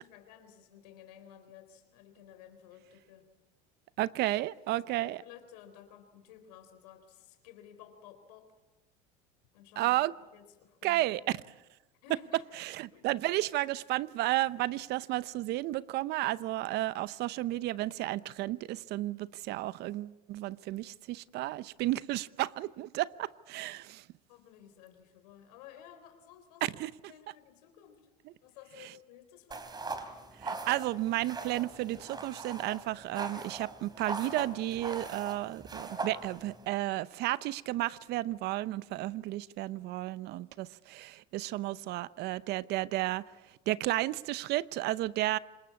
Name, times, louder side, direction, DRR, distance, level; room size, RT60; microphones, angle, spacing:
voice 1, 0.0-3.3 5.0-8.5 9.5-10.0 10.3-11.0 12.0-12.5 12.9-13.1 24.3-28.1 28.4-29.9, left 10 dB, 80° left, 3.9 m, -54 dB
voice 2, 4.0-5.2 9.8-10.1 10.8-11.2 12.6-24.0 26.6-26.9 30.4-43.2 43.7-45.4, right 16 dB, 55° right, 0.8 m, -32 dB
sound 1, 29.5-36.7, right 3 dB, 20° right, 3.2 m, -41 dB
25.5 x 21.0 x 8.6 m
supercardioid pair, 105°, 20 cm